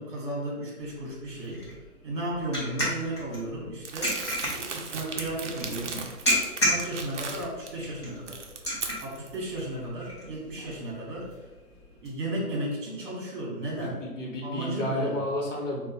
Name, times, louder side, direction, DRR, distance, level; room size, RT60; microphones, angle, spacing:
voice 1, 0.0-1.6 2.0-6.1 6.6-8.4 9.0-11.4 12.0-14.0 14.4-15.3, right 1 dB, 35° right, -3 dB, 1.2 m, -34 dB
sound 1, 0.8-12.1, equal, 20° left, 0.6 m, -34 dB
Crumpling crinkling, 3.8-7.7 8.1-9.4, right 5 dB, 55° right, 0.5 m, -37 dB
voice 2, 14.0-15.9, left 1 dB, 55° left, -3 dB, 1.1 m, -31 dB
2.5 x 2.3 x 4.1 m, 1.2 s
figure-of-eight pair, 145°, 46 cm